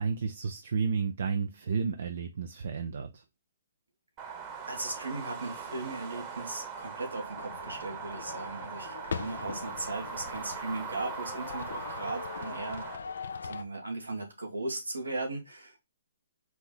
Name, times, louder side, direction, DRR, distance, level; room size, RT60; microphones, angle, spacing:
voice 1, 0.0-3.2, right 5 dB, 65° right, 0.6 m, -32 dB
sound 1, 4.2-13.0, right 6 dB, 25° right, 1.1 m, -41 dB
voice 2, 4.7-12.9 13.4-15.8, right 2 dB, 90° right, 1.9 m, -37 dB
sound 2, 7.4-13.6, left 6 dB, 70° left, 0.5 m, -41 dB
4.5 x 2.8 x 3.8 m
hypercardioid pair, 140°, 0 cm